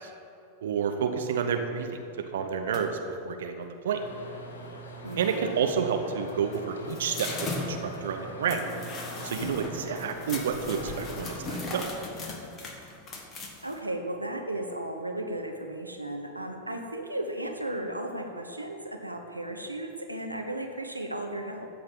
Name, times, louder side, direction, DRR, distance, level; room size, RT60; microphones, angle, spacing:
voice 1, 0.6-1.9 2.3-2.9 3.2-4.0 5.2-8.8 9.2-11.8, right 7 dB, 60° right, 5 dB, 1.0 m, -30 dB
sound 1, 2.7-3.1 4.7-4.8 5.0-5.5 6.3-13.8, left 2 dB, 25° left, 1.9 m, -38 dB
sound 2, 3.9-11.6, right 1 dB, 65° left, 2.2 m, -43 dB
voice 2, 5.0-5.6 13.6-21.7, right 1 dB, 85° right, 3 dB, 1.1 m, -35 dB
15.0 x 5.5 x 9.2 m, 2.6 s
figure-of-eight pair, 90°, 0 cm